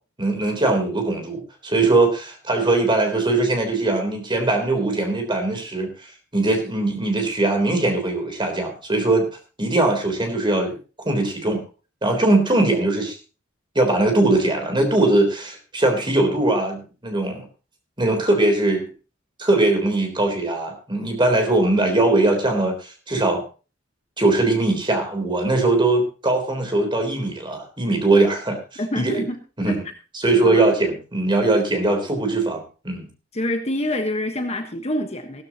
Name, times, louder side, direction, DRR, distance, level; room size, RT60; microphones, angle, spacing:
voice 1, 0.2-9.3 9.6-10.8 11.1-11.6 12.0-13.1 13.8-17.5 18.0-18.9 19.4-23.4 24.2-28.6 29.0-29.2 29.6-29.8 30.1-33.1, right 2 dB, 25° right, 3.6 m, -20 dB
voice 2, 28.8-29.4 29.7-29.8 30.4-30.7 33.3-35.4, left 1 dB, 35° left, 1.3 m, -26 dB
15.5 x 13.5 x 3.0 m
head